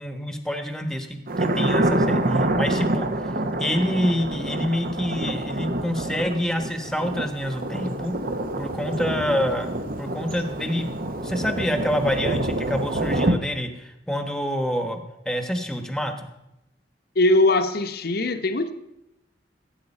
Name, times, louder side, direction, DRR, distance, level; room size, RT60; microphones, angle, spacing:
voice 1, 0.0-3.1 3.6-8.1 8.6-9.7 10.0-15.0 15.2-16.1, equal, 5° left, 8 dB, 1.1 m, -27 dB
Thunder, 1.3-13.3, right 1 dB, 50° right, 0.9 m, -26 dB
voice 2, 17.2-18.7, left 2 dB, 60° left, 9 dB, 1.0 m, -20 dB
15.5 x 8.1 x 5.4 m, 0.88 s
head